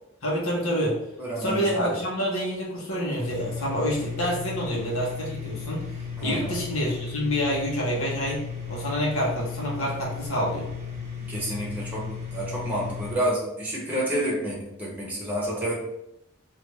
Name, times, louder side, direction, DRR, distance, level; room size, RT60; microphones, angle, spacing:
voice 1, 0.2-1.0 1.4-5.9 6.2-8.4 8.7-10.7, equal, 80° left, -3 dB, 1.0 m, -27 dB
voice 2, 1.2-1.9 6.2-6.6 11.3-15.7, right 1 dB, 10° right, -5 dB, 0.9 m, -29 dB
sound 1, 3.2-13.1, left 6 dB, 35° right, 0.8 m, -35 dB
3.3 x 2.5 x 3.1 m, 0.83 s
head